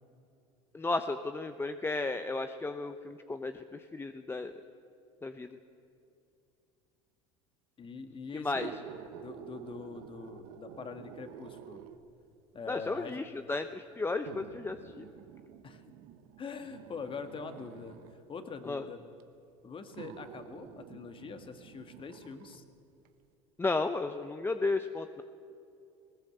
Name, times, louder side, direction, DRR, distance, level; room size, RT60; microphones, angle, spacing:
voice 1, 0.7-4.5 5.2-5.5 8.3-8.7 12.7-15.1 18.6-18.8 23.6-25.2, left 3 dB, 15° left, 9 dB, 0.8 m, -34 dB
voice 2, 7.8-8.7 9.2-11.8 12.5-13.2 15.6-15.8 16.4-18.0 18.3-19.1 19.6-22.6, left 5 dB, 30° left, 8 dB, 1.9 m, -43 dB
sound 1, 8.6-12.2 13.1-13.2 14.3-18.2 19.2-19.3 19.9-22.6 23.0-23.1, right 9 dB, 65° right, 1.3 m, -49 dB
19.5 x 17.5 x 8.1 m, 2.6 s
hypercardioid pair, 85°, 16 cm